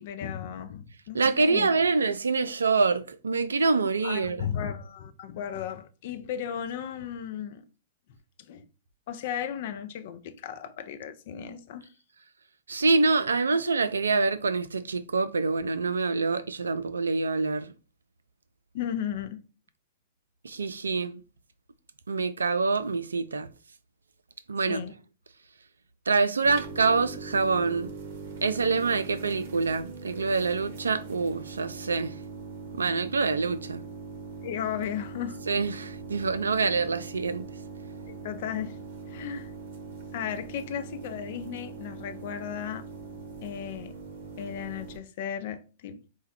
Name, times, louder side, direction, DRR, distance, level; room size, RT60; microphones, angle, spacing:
voice 1, 0.0-1.7 4.0-7.6 8.5-8.6 9.1-11.9 18.7-19.4 24.7-24.9 34.4-35.4 38.1-38.8 39.1-39.5 40.1-42.8 43.4-43.9 44.4-46.0, left 9 dB, 50° left, 0.5 m, -35 dB
voice 2, 1.1-4.5 12.7-17.7 20.4-21.2 22.1-23.5 24.5-24.8 26.1-27.9 28.4-32.1 32.7-33.8 35.5-37.5, right 4 dB, 75° right, 0.3 m, -26 dB
sound 1, 26.4-45.0, right 4 dB, 55° right, 0.8 m, -41 dB
4.3 x 2.2 x 3.5 m
figure-of-eight pair, 105°, 0 cm